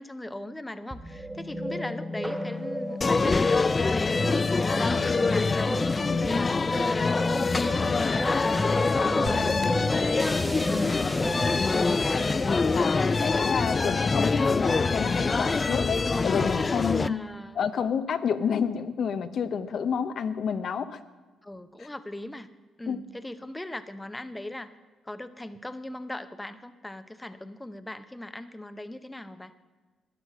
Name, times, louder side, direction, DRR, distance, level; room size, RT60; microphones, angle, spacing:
voice 1, 0.0-3.6 3.9-7.6 8.0-10.9 17.0-17.6 21.4-22.5 22.8-24.7 25.0-29.5, left 1 dB, 10° left, 11 dB, 0.7 m, -39 dB
sound 1, 0.9-15.3, left 1 dB, 10° right, 1.0 m, -34 dB
sound 2, 3.0-17.1, left 4 dB, 30° left, 0.4 m, -25 dB
Crackle, 7.8-16.0, right 4 dB, 50° right, 4.5 m, -49 dB
voice 2, 12.6-17.2 17.6-21.0 22.9-23.0, left 7 dB, 60° left, 10 dB, 0.7 m, -29 dB
12.0 x 9.9 x 6.7 m, 1.3 s
cardioid pair, 90°, 0 cm